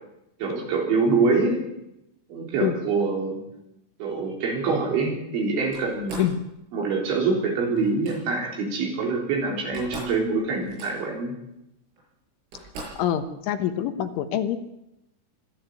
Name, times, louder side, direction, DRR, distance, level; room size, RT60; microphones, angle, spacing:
voice 1, 0.4-1.6 2.3-3.4 4.0-6.3 6.7-11.3, right 4 dB, 65° right, -1 dB, 6.2 m, -25 dB
Slam, 5.7-6.4 7.8-8.2 9.3-9.4 9.6-10.2 10.5-11.2 12.0-12.1 12.5-13.1, right 2 dB, 85° right, 10.0 m, -40 dB
voice 2, 13.0-14.6, left 10 dB, 75° left, 9 dB, 3.4 m, -25 dB
25.0 x 13.0 x 8.3 m, 0.87 s
omnidirectional pair, 5.8 m